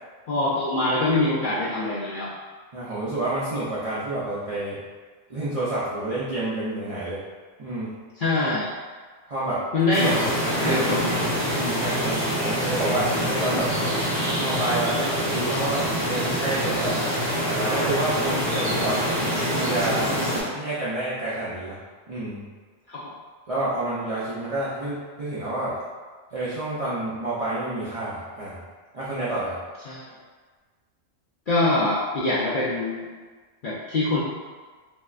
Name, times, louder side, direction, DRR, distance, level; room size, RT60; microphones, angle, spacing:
voice 1, 0.3-2.3 8.2-8.7 9.7-10.2 10.6-11.2 22.9-23.1 29.9-30.1 31.5-33.1 33.6-34.2, left 2 dB, 65° left, -8 dB, 0.5 m, -24 dB
voice 2, 2.7-4.8 5.3-7.2 7.6-8.0 9.3-9.6 10.6-10.8 11.5-13.7 14.4-17.0 17.5-19.0 19.5-20.1 20.5-21.8 22.1-22.5 23.5-25.8 26.3-28.6 28.9-29.6, right 2 dB, 60° right, -10 dB, 0.3 m, -29 dB
sound 1, 9.9-20.4, equal, 25° right, 1.1 m, -25 dB
3.1 x 2.7 x 2.4 m, 1.4 s
omnidirectional pair, 1.4 m